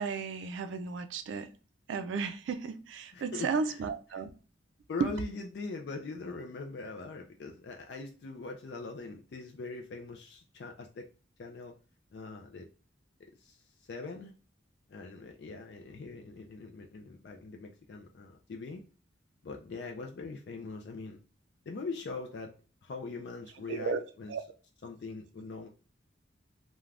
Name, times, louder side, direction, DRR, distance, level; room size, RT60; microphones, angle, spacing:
voice 1, 0.0-1.5 1.9-4.3 23.7-24.0 24.3-24.4, right 5 dB, 80° right, 0.3 m, -34 dB
voice 2, 3.1-4.2 4.9-11.1 11.4-11.7 12.1-12.7 13.3-14.3 14.9-18.8 19.4-21.2 21.7-22.5 22.8-24.3 24.8-25.7, left 3 dB, 60° left, 0.3 m, -42 dB
2.4 x 2.2 x 3.2 m
head